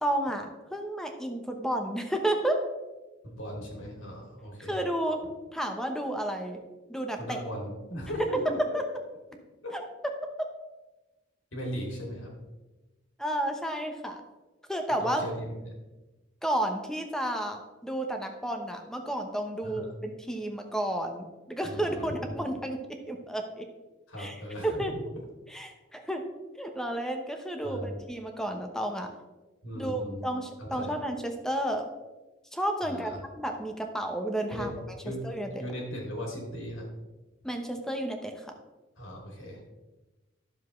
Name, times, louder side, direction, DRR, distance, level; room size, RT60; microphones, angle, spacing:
voice 1, 0.0-2.6 4.6-5.2 5.5-6.6 6.9-7.4 8.7-8.8 9.7-9.8 10.4-10.5 13.2-14.2 14.7-15.2 16.4-22.8 23.1-23.7 24.2-24.4 24.6-24.9 25.5-26.2 26.6-29.1 29.7-31.9 32.5-34.7 35.2-35.5 37.4-38.5, right 1 dB, 5° left, 4 dB, 0.9 m, -31 dB
voice 2, 3.2-4.8 7.2-8.6 9.6-9.7 11.5-12.3 15.0-15.6 19.6-19.9 21.6-22.5 24.1-24.9 27.6-27.9 29.6-30.2 30.6-31.0 32.8-33.2 34.5-34.7 35.0-35.3 35.6-36.9 39.0-39.6, equal, 75° left, -1 dB, 2.9 m, -37 dB
11.5 x 7.2 x 3.2 m, 1.1 s
head